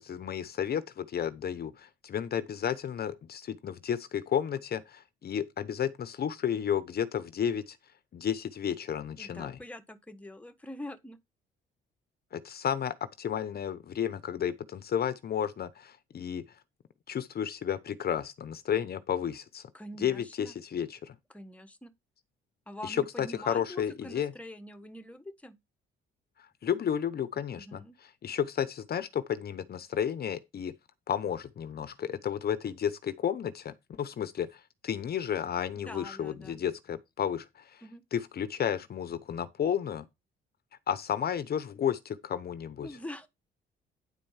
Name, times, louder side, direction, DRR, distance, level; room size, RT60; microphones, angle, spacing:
voice 1, 0.0-7.8 8.1-9.6 12.3-16.4 17.1-19.7 20.0-21.2 22.8-24.3 26.6-27.8 28.2-30.7 31.1-37.8 38.1-40.0 40.9-42.9, left 9 dB, 50° left, 0.8 m, -32 dB
voice 2, 9.2-11.2 19.7-20.5 21.3-21.9 22.7-25.6 27.5-28.0 35.8-36.6 37.8-38.0 42.8-43.3, left 1 dB, 5° left, 1.4 m, -44 dB
9.9 x 4.5 x 5.6 m
cardioid pair, 90°, 20 cm